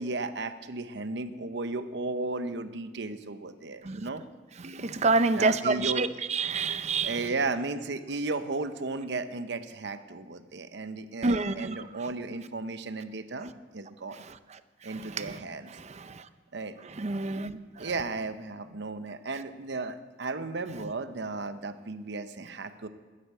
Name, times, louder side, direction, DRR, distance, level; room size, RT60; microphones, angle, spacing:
voice 1, 0.0-4.2 5.4-6.1 7.0-14.2 14.8-15.7 16.5-16.8 17.8-22.9, right 3 dB, 70° right, 11 dB, 0.8 m, -34 dB
voice 2, 4.6-7.2 11.2-11.8 15.1-15.3 15.8-16.2 17.0-17.9, right 3 dB, 40° right, 12 dB, 0.6 m, -28 dB
13.0 x 10.5 x 7.6 m, 1.3 s
head